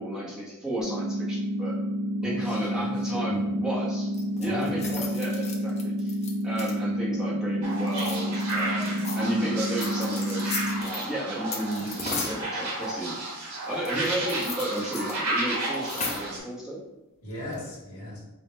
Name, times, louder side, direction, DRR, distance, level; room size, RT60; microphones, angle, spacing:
voice 1, 0.0-1.8 2.2-4.1 4.4-6.1 6.4-16.8, right 1 dB, 5° right, -7 dB, 1.0 m, -33 dB
sound 1, 0.8-10.8, equal, 55° right, 0.6 m, -29 dB
voice 2, 2.2-3.5 4.4-5.0 17.2-18.2, left 1 dB, 75° left, -5 dB, 1.4 m, -38 dB
sound 2, 4.1-7.0 7.8-9.2 9.8-11.0 11.5-12.4 13.8-15.1 15.4-15.5 15.7-16.4 17.3-17.6, left 4 dB, 30° left, 0.6 m, -36 dB
sound 3, 7.6-16.4, right 2 dB, 85° right, 1.1 m, -33 dB
3.5 x 2.3 x 4.2 m, 1.0 s
head